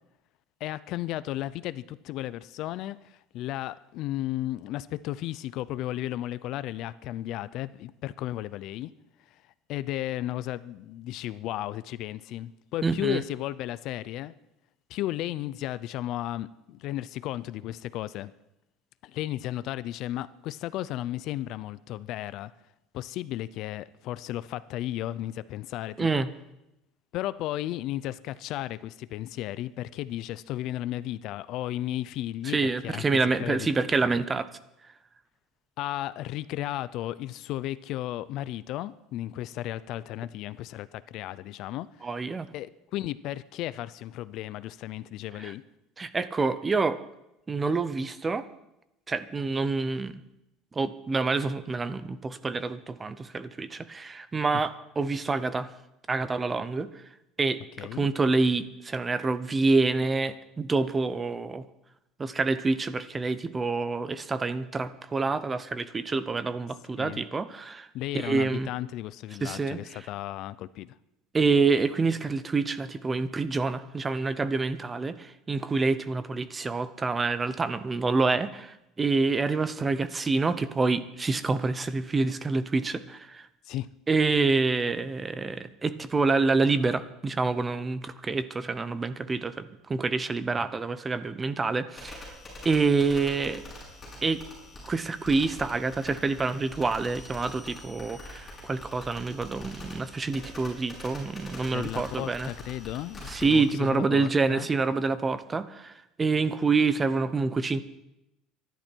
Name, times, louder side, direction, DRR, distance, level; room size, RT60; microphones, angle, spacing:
voice 1, 0.6-8.9 9.7-14.4 14.9-18.3 19.0-22.5 22.9-26.2 27.1-32.6 32.8-33.0 33.4-33.7 35.8-42.1 42.5-45.6 57.8-58.1 67.0-67.2 67.9-71.0 83.7-83.9 101.7-104.7, left 14 dB, 50° left, 17 dB, 0.5 m, -34 dB
voice 2, 12.8-13.2 26.0-26.3 32.4-34.5 42.0-42.5 45.4-45.5 46.0-47.0 47.5-48.5 49.1-50.2 50.7-55.7 56.1-57.0 57.4-61.6 62.2-67.9 68.1-68.7 69.4-70.0 71.3-83.5 84.1-92.3 92.6-93.6 94.2-94.4 94.8-102.5 103.3-105.9 106.2-107.8, right 4 dB, 15° right, 14 dB, 0.7 m, -27 dB
sound 1, 92.0-103.8, left 1 dB, 15° left, 7.5 m, -44 dB
23.5 x 11.5 x 4.6 m, 0.90 s
cardioid pair, 160°, 0 cm